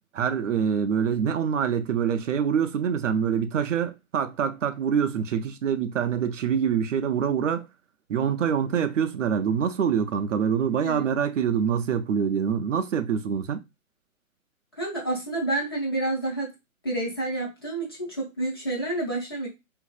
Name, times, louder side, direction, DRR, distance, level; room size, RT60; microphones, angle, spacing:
voice 1, 0.1-7.7 8.1-13.6, right 7 dB, 60° right, 0.5 m, -25 dB
voice 2, 14.8-16.5 16.8-19.5, right 2 dB, 20° left, 0.4 m, -29 dB
2.9 x 2.6 x 2.4 m
hypercardioid pair, 140°, 43 cm